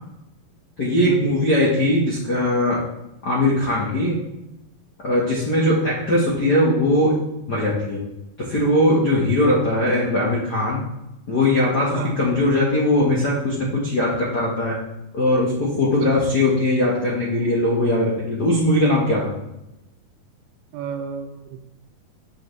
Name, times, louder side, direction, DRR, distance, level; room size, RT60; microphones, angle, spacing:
voice 1, 0.8-2.8 3.2-4.2 5.0-7.2 7.5-8.0 8.4-10.8 11.3-14.8 15.1-19.3, left 1 dB, 70° left, -5 dB, 0.9 m, -20 dB
voice 2, 20.7-21.6, right 7 dB, 85° right, 7 dB, 2.4 m, -31 dB
7.6 x 6.8 x 3.2 m, 0.91 s
omnidirectional pair, 4.2 m